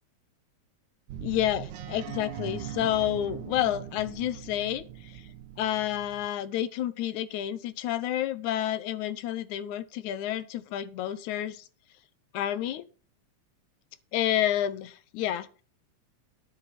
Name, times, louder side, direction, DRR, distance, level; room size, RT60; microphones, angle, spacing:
sound 1, 1.1-6.3, right 11 dB, 85° right, 2.4 m, -41 dB
voice 1, 1.2-5.2 5.6-11.7 12.3-12.8 14.1-15.5, left 12 dB, 85° left, 14 dB, 2.2 m, -30 dB
9.9 x 7.9 x 5.8 m, 0.37 s
omnidirectional pair, 3.4 m